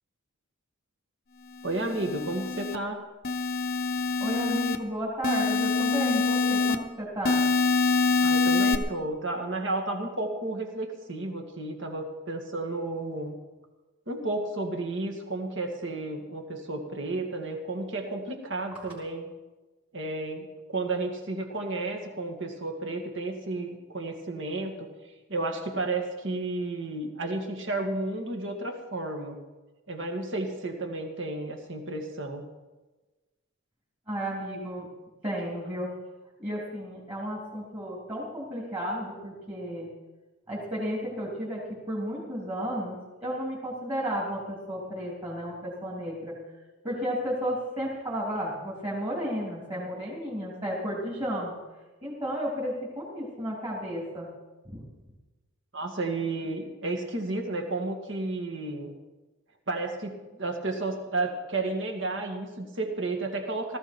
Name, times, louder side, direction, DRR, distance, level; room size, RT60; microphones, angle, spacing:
sound 1, 1.6-2.7 3.2-4.8 5.2-6.7 7.2-8.7, left 3 dB, 40° left, 0.8 m, -25 dB
voice 1, 1.6-3.1 8.2-13.4 14.1-19.3 19.9-24.9 25.3-29.4 29.9-32.4 55.7-58.9 59.7-63.8, right 2 dB, 55° right, 3 dB, 2.2 m, -32 dB
voice 2, 4.2-7.4 18.8-18.9 34.1-34.9 35.2-35.9 36.4-39.9 40.5-46.4 46.8-51.6 52.0-54.3 54.7-54.8, equal, 25° right, -5 dB, 3.2 m, -33 dB
18.0 x 14.0 x 4.5 m, 1.2 s
head